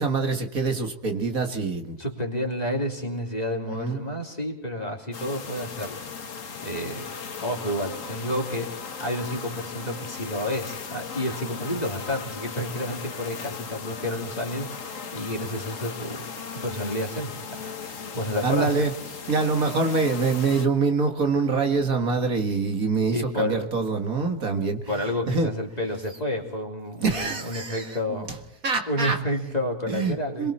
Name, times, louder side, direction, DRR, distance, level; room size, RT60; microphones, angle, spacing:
voice 1, 0.0-2.0 3.6-4.0 18.4-18.9 19.3-24.9 25.3-25.5 27.0-28.0 28.6-29.2 29.9-30.5, right 4 dB, 60° right, 5 dB, 2.2 m, -25 dB
voice 2, 2.0-7.1 7.4-8.7 9.0-16.3 16.5-18.8 23.1-23.7 24.9-28.4 28.9-30.5, left 1 dB, 25° left, 2 dB, 3.2 m, -30 dB
sound 1, 5.1-20.7, left 6 dB, 55° left, 1.7 m, -37 dB
27.5 x 22.0 x 4.3 m, 0.77 s
omnidirectional pair, 1.6 m